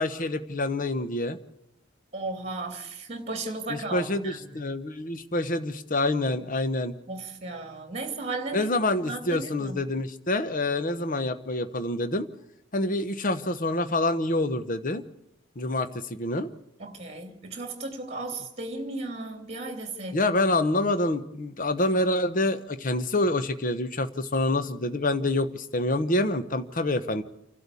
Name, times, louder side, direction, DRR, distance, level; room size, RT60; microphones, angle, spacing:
voice 1, 0.0-1.4 3.7-6.9 8.5-12.3 12.7-15.0 15.6-16.5 20.1-27.2, left 2 dB, 40° left, 11 dB, 0.9 m, -27 dB
voice 2, 2.1-4.6 7.1-8.7 9.0-9.8 16.8-20.3, right 2 dB, 30° right, 5 dB, 3.0 m, -35 dB
29.5 x 12.5 x 8.3 m, 0.81 s
head